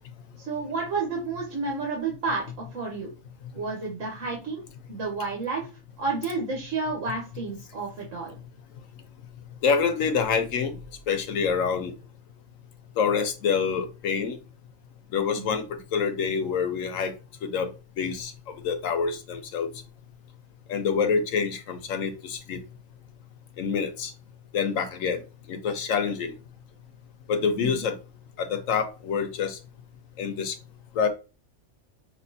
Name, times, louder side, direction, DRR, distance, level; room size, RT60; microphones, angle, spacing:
voice 1, 0.5-2.4 2.7-3.1 3.5-4.6 4.9-5.7 6.0-8.4 15.3-15.6 27.6-27.8, right 4 dB, 80° right, -1 dB, 1.5 m, -30 dB
voice 2, 9.6-10.8 11.1-11.9 13.0-14.4 15.1-17.1 17.4-17.7 18.0-18.3 18.6-19.7 20.7-22.6 23.6-24.1 24.5-25.2 25.5-26.3 27.3-28.0 28.4-29.6 30.2-30.5 31.0-31.1, left 6 dB, 90° left, 7 dB, 1.1 m, -26 dB
5.3 x 2.8 x 2.7 m, 0.31 s
omnidirectional pair, 1.3 m